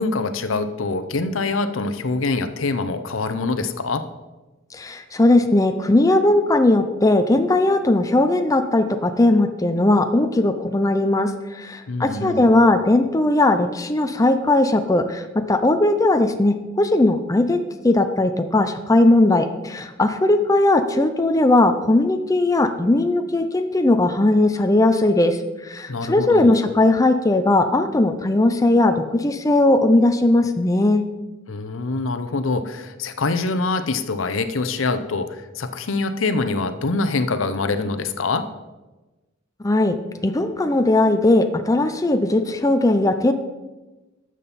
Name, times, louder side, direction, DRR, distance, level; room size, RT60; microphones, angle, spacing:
voice 1, 0.0-4.1 11.9-12.5 25.9-26.5 31.5-38.5, left 3 dB, 75° left, 10 dB, 0.7 m, -24 dB
voice 2, 4.7-31.0 39.6-40.0 40.2-43.3, left 2 dB, 15° left, 7 dB, 0.5 m, -18 dB
12.5 x 7.5 x 4.2 m, 1.1 s
head